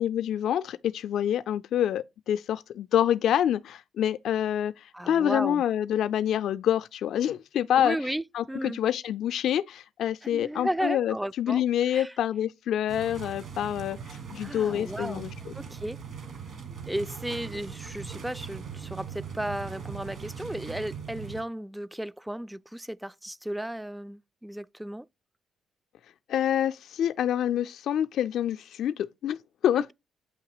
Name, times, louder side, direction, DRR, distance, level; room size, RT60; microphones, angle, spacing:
voice 1, 0.0-8.0 8.3-14.0 14.3-15.5 26.3-29.4 29.6-29.9, left 10 dB, 75° left, 0.4 m, -27 dB
voice 2, 4.9-5.6 7.8-8.8 10.2-12.1 14.4-15.3 15.5-16.0 16.9-25.1, right 1 dB, 5° right, 0.3 m, -34 dB
sound 1, 12.9-21.4, right 6 dB, 60° right, 1.7 m, -40 dB
8.4 x 2.9 x 4.8 m
cardioid pair, 90°, 0 cm